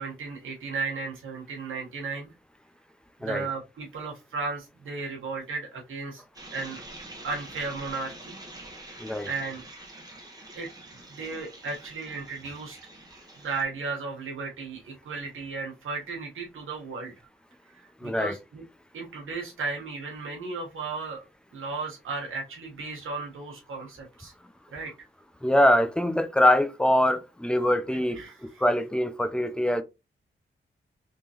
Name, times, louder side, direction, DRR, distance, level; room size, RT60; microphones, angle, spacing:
voice 1, 0.0-2.3 3.2-6.2 6.5-6.9 7.2-8.4 8.9-9.6 10.5-12.8 13.4-17.1 17.7-18.6 18.9-21.2 21.5-24.3 24.7-24.9 28.1-28.4, right 4 dB, 85° right, 1.2 m, -35 dB
sound 1, 6.3-13.6, right 1 dB, 20° right, 1.3 m, -46 dB
voice 2, 18.0-18.3 25.4-29.8, left 1 dB, 5° left, 0.5 m, -23 dB
3.7 x 3.1 x 2.8 m
cardioid pair, 90°, 20 cm